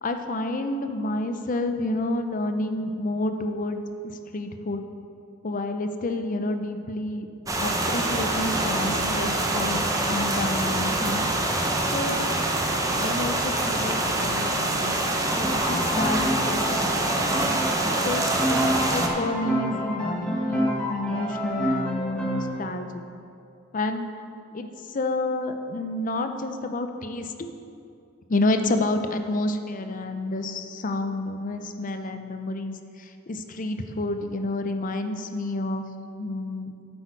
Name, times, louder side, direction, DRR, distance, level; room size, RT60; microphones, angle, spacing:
voice 1, 0.0-4.9 5.4-11.3 11.8-12.3 12.6-17.6 18.0-23.0 23.7-24.1 24.5-27.5 28.3-35.8 36.2-36.7, left 2 dB, 40° left, 7 dB, 0.6 m, -30 dB
sound 1, 7.5-19.1, right 2 dB, 15° right, 0.7 m, -25 dB
Piano, 15.3-22.6, equal, 5° left, 1.5 m, -28 dB
8.6 x 7.9 x 4.6 m, 2.5 s
head